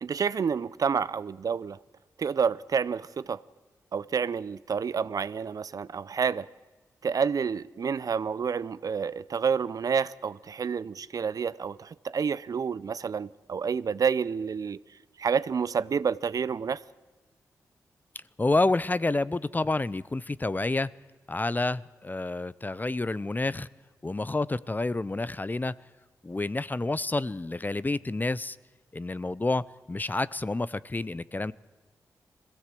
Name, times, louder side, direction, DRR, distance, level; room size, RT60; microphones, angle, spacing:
voice 1, 0.0-1.8 2.2-3.4 3.9-6.5 7.0-14.8 15.2-16.8, right 6 dB, 60° right, 0.5 m, -29 dB
voice 2, 18.4-20.9 21.3-23.7 24.0-25.7 26.2-28.6 28.9-31.5, left 2 dB, 25° left, 0.6 m, -29 dB
21.5 x 16.0 x 7.7 m
supercardioid pair, 40°, 7 cm